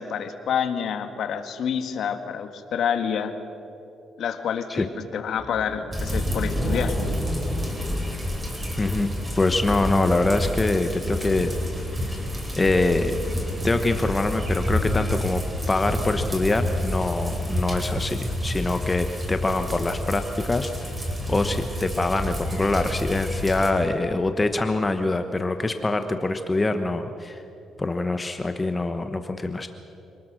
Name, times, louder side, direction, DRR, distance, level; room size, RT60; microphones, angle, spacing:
voice 1, 0.0-3.3 4.2-4.9 5.1-7.0, left 7 dB, 70° left, 7 dB, 1.7 m, -28 dB
sound 1, 5.4-9.8, equal, ahead, 2.0 m, -33 dB
sound 2, 5.9-23.7, left 1 dB, 15° right, 4.3 m, -29 dB
voice 2, 8.8-9.1 9.4-11.5 12.1-12.2 12.6-13.1 13.6-15.4 15.7-20.7 21.3-27.4 27.8-29.7, left 2 dB, 20° left, 7 dB, 1.1 m, -24 dB
27.0 x 19.5 x 6.4 m, 2.8 s
cardioid pair, 90°, 0 cm